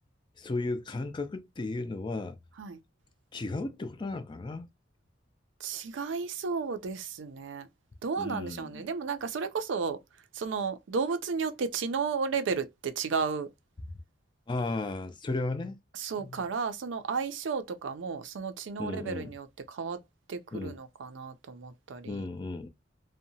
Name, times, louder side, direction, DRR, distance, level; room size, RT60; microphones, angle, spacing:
voice 1, 0.4-2.4 3.3-4.7 8.2-8.9 14.5-15.8 16.2-16.4 18.8-19.3 20.5-20.8 22.1-22.7, left 2 dB, 25° left, 0.3 m, -34 dB
voice 2, 5.6-7.7 8.0-10.0 10.3-13.5 15.9-20.0 20.3-22.3, right 5 dB, 70° right, 0.4 m, -33 dB
2.7 x 2.1 x 2.6 m
head